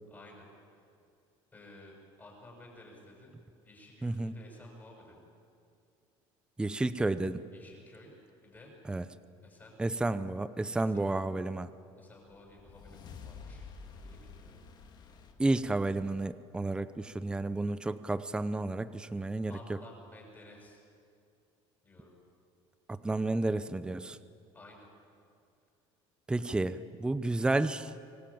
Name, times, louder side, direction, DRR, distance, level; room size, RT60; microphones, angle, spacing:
voice 1, 0.1-0.8 1.5-3.3 3.6-5.3 7.5-8.2 8.4-8.7 9.4-9.8 10.8-11.3 12.0-15.1 19.5-20.8 21.8-22.1 24.5-24.9, left 2 dB, 20° left, -1 dB, 7.0 m, -54 dB
voice 2, 4.0-4.3 6.6-7.4 8.9-9.0 9.8-11.7 15.4-19.5 22.9-24.2 26.3-27.9, right 2 dB, 10° right, 13 dB, 0.7 m, -31 dB
sound 1, 12.3-16.8, left 5 dB, 40° left, 2.2 m, -50 dB
25.0 x 19.0 x 8.8 m, 2.5 s
cardioid pair, 140°, 11 cm